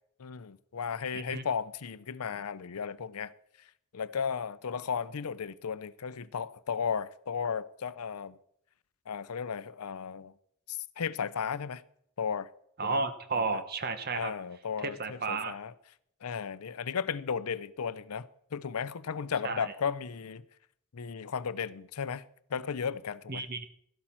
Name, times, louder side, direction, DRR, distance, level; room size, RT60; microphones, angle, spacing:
voice 1, 0.2-3.3 3.9-8.4 9.1-10.3 10.7-11.8 12.2-12.5 12.8-13.0 13.3-13.6 14.1-15.7 16.2-20.4 20.9-22.2 22.5-23.5, left 6 dB, 80° left, 0.6 m, -35 dB
voice 2, 1.1-1.5 12.8-14.3 14.8-15.5 19.4-19.7 23.3-23.6, right 4 dB, 45° right, 1.0 m, -33 dB
13.0 x 11.5 x 4.4 m
head